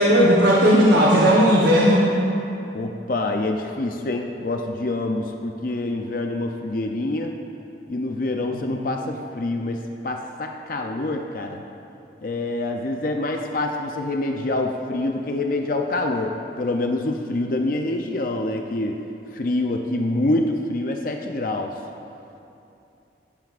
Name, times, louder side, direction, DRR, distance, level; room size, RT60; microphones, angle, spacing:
voice 1, 0.0-2.1 8.5-8.7, equal, 70° right, -4 dB, 1.1 m, -16 dB
voice 2, 2.7-7.3 7.9-11.6 12.2-19.0 19.3-21.7, left 2 dB, 50° left, 3 dB, 0.5 m, -26 dB
16.5 x 9.3 x 2.5 m, 2.7 s
head